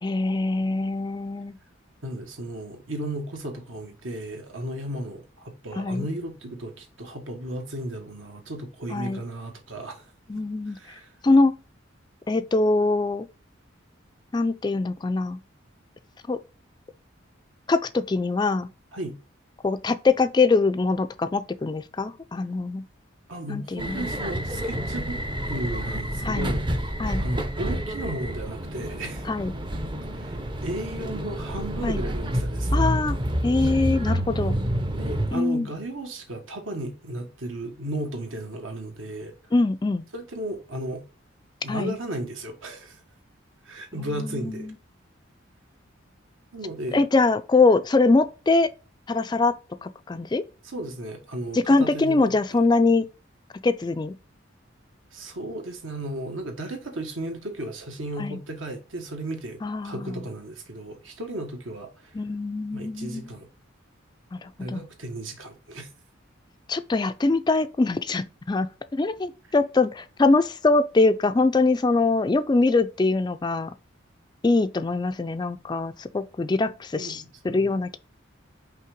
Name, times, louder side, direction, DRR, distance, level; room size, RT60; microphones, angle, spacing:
voice 1, 0.0-1.6 5.7-6.1 8.9-9.2 10.3-10.8 11.2-11.5 12.3-13.3 14.3-15.4 16.3-16.4 17.7-18.7 19.6-22.8 23.5-24.1 26.2-26.5 27.0-27.2 29.3-29.5 31.8-32.0 32.7-33.2 33.4-34.6 35.3-35.7 39.5-40.0 41.7-42.0 43.9-44.7 46.9-48.7 49.1-49.5 49.8-50.4 51.5-53.1 53.6-54.2 58.2-58.4 59.6-60.2 62.1-63.3 64.3-64.8 66.7-73.7 74.4-78.0, left 3 dB, 20° left, 0.3 m, -23 dB
voice 2, 2.0-10.0 10.7-11.1 18.9-19.1 23.3-26.6 27.2-29.3 30.1-32.7 34.9-39.3 40.1-41.0 41.6-43.0 43.6-44.7 46.5-47.0 50.6-52.6 55.1-62.1 62.7-63.5 64.6-65.9 76.9-77.8, right 1 dB, 75° right, 1.5 m, -35 dB
sound 1, 23.8-35.3, equal, 25° right, 0.6 m, -28 dB
5.5 x 3.3 x 5.2 m
head